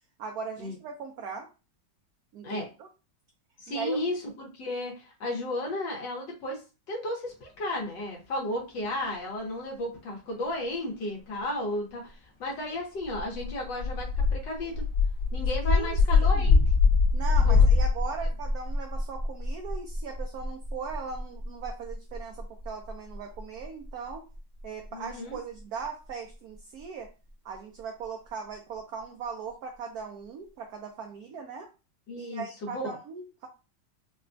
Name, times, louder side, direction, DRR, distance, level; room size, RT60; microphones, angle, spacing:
voice 1, 0.2-1.5 2.3-2.9 3.7-4.0 15.6-16.5 17.1-24.2 24.6-27.1 27.4-31.7 32.2-33.5, right 5 dB, 70° right, 2 dB, 1.0 m, -39 dB
voice 2, 3.6-6.6 6.9-12.1 12.4-14.9 15.3-16.6 17.4-17.7 24.9-25.4 32.1-33.0, left 1 dB, 75° left, -1 dB, 1.8 m, -34 dB
sound 1, 13.1-17.9, left 4 dB, 50° left, 1.6 m, -22 dB
sound 2, 15.6-29.0, equal, 35° right, 0.7 m, -35 dB
5.2 x 2.3 x 2.6 m, 0.31 s
omnidirectional pair, 1.9 m